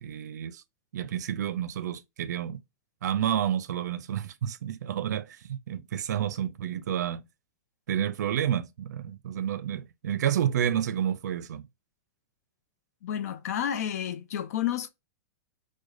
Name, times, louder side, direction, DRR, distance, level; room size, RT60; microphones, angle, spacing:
voice 1, 0.0-0.6 0.9-2.6 3.0-7.2 7.9-11.7, right 10 dB, 85° right, 0.4 m, -30 dB
voice 2, 13.0-14.9, left 10 dB, 65° left, 0.5 m, -30 dB
4.7 x 2.1 x 2.4 m
supercardioid pair, 150°, 9 cm